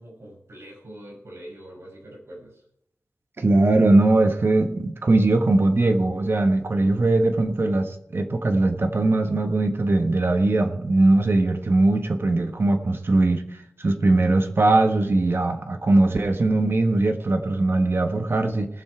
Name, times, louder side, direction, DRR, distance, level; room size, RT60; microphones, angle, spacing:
voice 1, 0.0-2.6, right 1 dB, 70° right, -2 dB, 5.8 m, -43 dB
voice 2, 3.4-13.4 13.8-18.7, right 2 dB, 55° right, 5 dB, 1.5 m, -20 dB
19.0 x 7.3 x 4.6 m, 0.77 s
wide cardioid pair, 100°, 5 cm